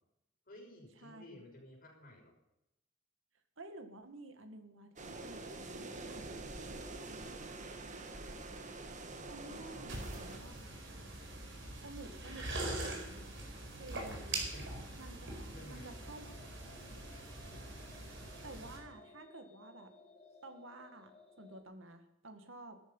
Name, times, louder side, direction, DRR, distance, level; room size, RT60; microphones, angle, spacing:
voice 1, 0.5-2.3 9.3-10.3 14.5-14.7 15.5-16.0, left 1 dB, 50° left, 0 dB, 6.0 m, -55 dB
voice 2, 1.0-1.5 3.6-7.5 9.3-10.1 10.4-10.6 11.8-13.3 13.8-14.5 15.0-16.3 18.4-19.9 20.4-22.8, right 2 dB, 85° right, 7 dB, 2.0 m, -52 dB
sound 1, 5.0-10.4, right 2 dB, 40° right, 1.6 m, -46 dB
sound 2, 9.9-18.8, right 2 dB, 65° right, 4.6 m, -43 dB
sound 3, 15.9-21.6, left 3 dB, 35° left, 2.5 m, -60 dB
16.0 x 13.5 x 5.6 m, 0.87 s
head